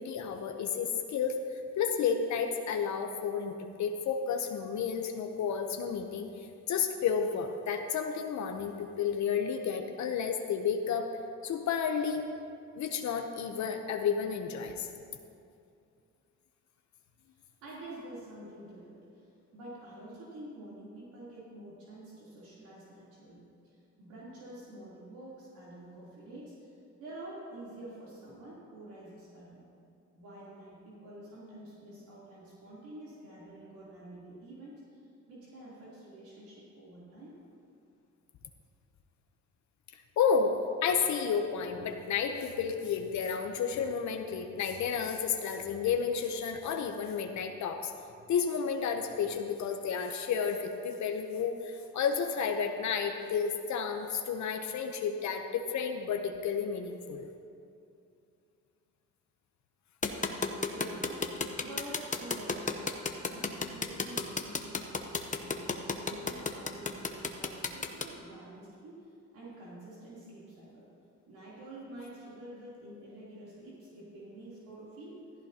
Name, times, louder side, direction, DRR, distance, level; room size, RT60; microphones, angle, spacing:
voice 1, 0.0-6.3 6.7-11.1 11.4-12.3 12.8-14.9 40.2-40.5 40.8-47.9 48.3-57.3, left 6 dB, 70° left, 4 dB, 0.9 m, -31 dB
voice 2, 17.3-26.7 27.0-29.6 30.1-37.4 60.6-70.9 71.3-75.3, right 1 dB, 85° right, -8 dB, 3.3 m, -48 dB
sound 1, 60.0-68.0, left 4 dB, 25° left, 0.9 m, -32 dB
15.0 x 14.5 x 2.9 m, 2.5 s
cardioid pair, 90°, 30 cm